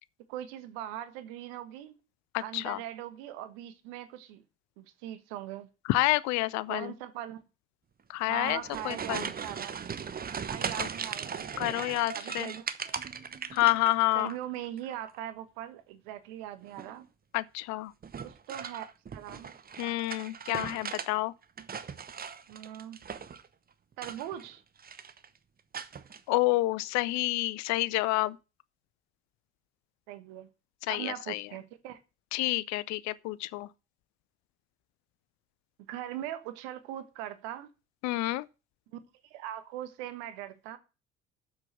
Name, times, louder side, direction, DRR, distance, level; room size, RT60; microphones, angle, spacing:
voice 1, 0.3-1.9 2.4-4.4 4.8-5.7 6.7-7.4 8.3-9.8 10.5-11.7 12.1-13.0 14.1-17.1 18.2-18.8 19.1-19.5 20.5-20.8 22.5-23.0 24.0-24.6 30.1-30.5 30.9-32.0 35.9-37.7 38.9-40.8, right 12 dB, 65° right, 1.2 m, -40 dB
voice 2, 2.3-2.8 5.9-6.9 8.1-8.6 8.8-9.3 10.8-10.9 11.6-12.5 13.5-14.3 17.3-17.9 19.8-21.3 26.3-28.4 30.9-31.5 32.3-33.7 38.0-38.5, left 19 dB, 55° left, 0.7 m, -28 dB
sound 1, 8.3-14.3 14.6-15.2 16.6-17.0 18.0-21.1 21.4-23.5 23.9-24.5 24.8-25.3 25.7-26.2, right 6 dB, 25° right, 1.0 m, -39 dB
7.5 x 7.2 x 7.8 m
figure-of-eight pair, 50°, 34 cm